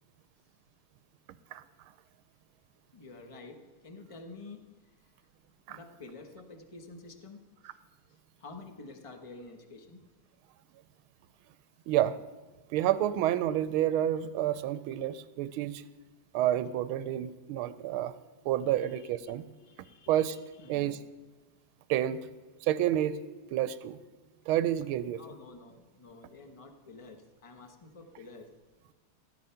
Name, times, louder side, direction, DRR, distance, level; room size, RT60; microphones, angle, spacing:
voice 1, 2.9-4.7 5.0-5.1 5.7-7.8 8.4-10.0 14.7-14.8 15.8-15.9 18.8-19.1 19.6-21.0 25.2-28.5, left 3 dB, 30° left, 5 dB, 0.6 m, -49 dB
voice 2, 11.9-12.2 12.7-15.8 16.3-18.1 18.4-19.5 20.1-20.4 20.7-21.0 21.9-22.2 22.6-23.2 23.5-24.0 24.5-25.2, right 12 dB, 85° right, 14 dB, 1.5 m, -29 dB
16.0 x 9.0 x 5.7 m, 1.3 s
omnidirectional pair, 2.3 m